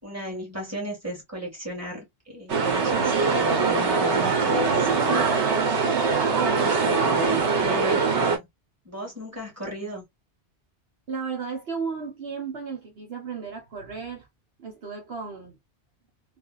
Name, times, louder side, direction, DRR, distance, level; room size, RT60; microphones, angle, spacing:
voice 1, 0.0-5.3 6.3-8.5 8.9-10.0, equal, 15° right, 1.9 m, -34 dB
sound 1, 2.5-8.4, right 5 dB, 80° right, 1.2 m, -22 dB
voice 2, 6.4-8.0 11.1-14.3 14.6-15.6, right 5 dB, 65° right, 1.2 m, -35 dB
3.4 x 2.6 x 2.4 m
omnidirectional pair, 1.1 m